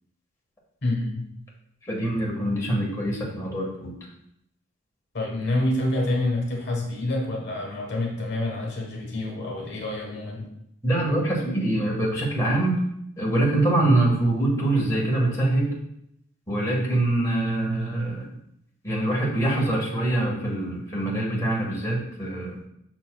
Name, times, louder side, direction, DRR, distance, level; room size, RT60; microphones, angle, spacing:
voice 1, 0.8-1.3 5.1-10.5, left 1 dB, 55° left, -1 dB, 1.3 m, -27 dB
voice 2, 1.8-3.9 10.8-12.8 13.2-15.7 16.5-18.2 18.8-22.6, right 1 dB, 15° left, -4 dB, 1.5 m, -24 dB
6.8 x 6.0 x 2.3 m, 0.75 s
head